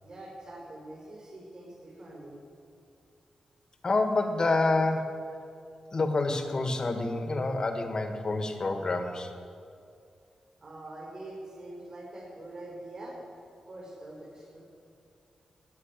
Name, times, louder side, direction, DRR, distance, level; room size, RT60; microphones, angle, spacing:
voice 1, 0.0-2.4 10.6-13.2 13.7-14.6, right 1 dB, 45° right, -5 dB, 4.7 m, -44 dB
voice 2, 3.8-5.2 5.9-9.3, left 2 dB, 40° left, 6 dB, 1.4 m, -28 dB
13.0 x 9.5 x 8.9 m, 2.5 s
wide cardioid pair, 110°, 2 cm